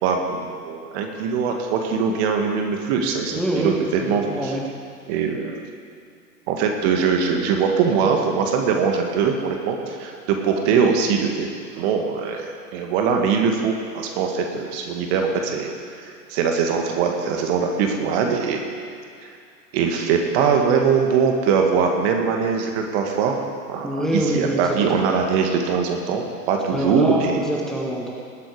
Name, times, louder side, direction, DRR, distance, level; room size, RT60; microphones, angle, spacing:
voice 1, 0.0-3.7 4.1-4.5 5.1-5.6 6.5-11.5 11.7-18.6 19.2-19.3 19.7-23.4 23.7-27.4, right 6 dB, 40° right, 3 dB, 1.9 m, -22 dB
voice 2, 3.3-3.7 4.0-4.6 23.8-25.0 26.7-28.1, right 1 dB, ahead, -3 dB, 1.5 m, -25 dB
20.0 x 8.8 x 4.9 m, 2.3 s
figure-of-eight pair, 105°, 48 cm